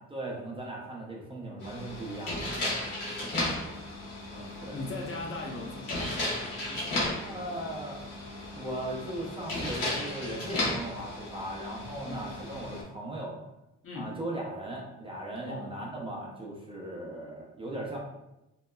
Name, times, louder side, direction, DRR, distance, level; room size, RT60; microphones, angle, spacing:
voice 1, 0.1-2.5 4.6-4.8 7.2-8.0 8.5-13.4 13.9-18.0, right 1 dB, 20° right, -3 dB, 0.5 m, -38 dB
sound 1, 1.6-12.8, left 1 dB, 85° left, 1.1 m, -35 dB
voice 2, 3.0-4.0 4.3-7.7 12.0-12.3 13.8-14.1 15.4-15.7, left 2 dB, 45° left, -1 dB, 0.6 m, -41 dB
2.8 x 2.1 x 2.2 m, 0.93 s
cardioid pair, 90°, 30 cm